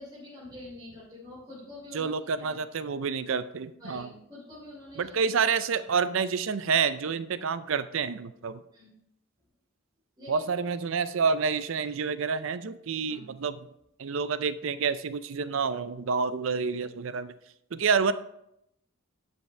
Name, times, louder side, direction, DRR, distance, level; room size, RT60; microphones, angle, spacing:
voice 1, 0.0-2.1 2.4-2.6 3.8-5.2 5.8-5.9 8.7-8.9 10.2-10.5 13.1-13.3, left 1 dB, 20° right, -11 dB, 3.3 m, -46 dB
voice 2, 1.9-4.1 5.0-8.6 10.3-13.6 14.0-17.3 17.7-18.1, right 5 dB, 65° right, 13 dB, 0.5 m, -28 dB
11.5 x 5.5 x 3.3 m, 0.79 s
head